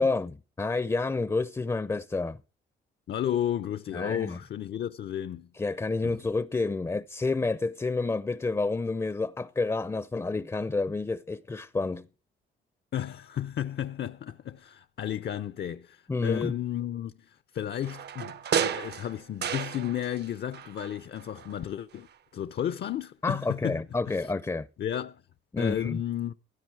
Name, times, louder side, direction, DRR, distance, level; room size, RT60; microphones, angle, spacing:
voice 1, 0.0-2.4 3.9-4.4 5.5-12.1 16.1-16.5 23.2-24.7 25.5-26.0, left 3 dB, 15° left, 0.6 m, -29 dB
voice 2, 3.1-5.5 6.0-6.2 12.9-22.1 22.3-24.3 24.8-25.2 25.6-26.3, left 10 dB, 55° left, 0.7 m, -33 dB
sound 1, 17.8-20.3 20.5-21.6 21.9-22.0, right 8 dB, 55° right, 0.9 m, -32 dB
16.5 x 12.0 x 4.7 m
cardioid pair, 90°, 20 cm